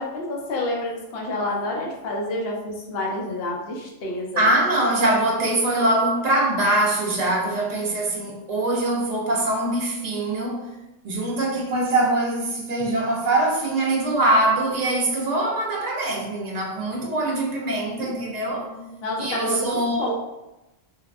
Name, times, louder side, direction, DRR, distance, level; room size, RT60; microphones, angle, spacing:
voice 1, 0.0-4.5 18.0-20.1, left 2 dB, 60° left, 0.8 m, -29 dB
voice 2, 4.4-10.7 11.0-18.7 19.2-20.1, right 2 dB, 50° right, 0.5 m, -23 dB
3.3 x 2.2 x 2.3 m
omnidirectional pair, 1.2 m